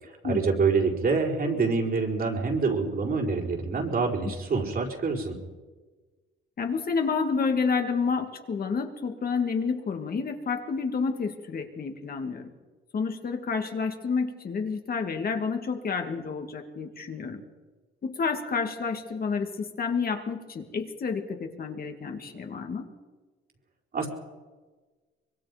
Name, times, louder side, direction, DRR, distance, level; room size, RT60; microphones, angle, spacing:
voice 1, 0.0-5.4 23.9-24.1, right 4 dB, 50° right, 1 dB, 4.9 m, -26 dB
voice 2, 6.6-12.5 12.9-17.4 18.0-22.9, left 5 dB, 50° left, 4 dB, 2.6 m, -29 dB
24.5 x 22.5 x 5.3 m, 1.3 s
cardioid pair, 90°, 20 cm